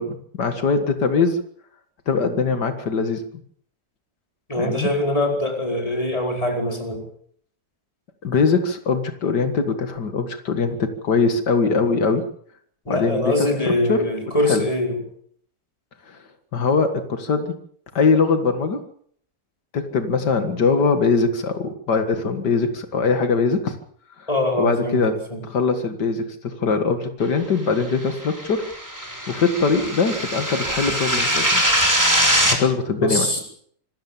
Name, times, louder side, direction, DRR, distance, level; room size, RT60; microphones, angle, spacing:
voice 1, 0.0-1.4 2.1-3.2 4.6-4.9 8.2-12.2 12.9-13.3 13.9-14.0 14.5-14.6 16.1-16.2 16.5-17.5 17.9-18.8 19.7-23.8 24.2-24.3 24.6-25.1 25.4-28.7 29.3-31.6 32.5-33.3, left 4 dB, 90° left, 8 dB, 2.5 m, -21 dB
voice 2, 4.5-7.0 12.9-15.0 24.3-25.4 33.0-33.4, left 1 dB, 20° left, 2 dB, 4.9 m, -23 dB
sound 1, 28.1-32.6, equal, 10° right, 4.1 m, -22 dB
26.0 x 14.5 x 7.4 m, 0.63 s
omnidirectional pair, 1.8 m